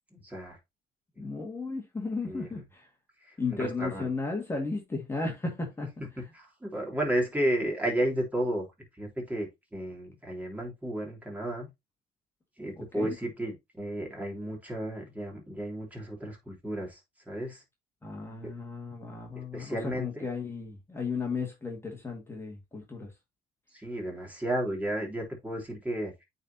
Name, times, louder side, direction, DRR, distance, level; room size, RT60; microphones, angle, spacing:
voice 1, 0.1-0.6 1.2-1.3 2.3-2.6 3.2-4.1 6.2-8.6 9.0-11.7 12.6-17.0 17.3-17.6 18.4-18.5 19.3-20.2 23.7-26.2, right 1 dB, 10° right, 3.2 m, -33 dB
voice 2, 1.2-2.9 3.4-5.9 12.9-13.1 18.0-23.1, left 4 dB, 15° left, 1.9 m, -34 dB
8.9 x 4.1 x 2.8 m
cardioid pair, 110°, 17 cm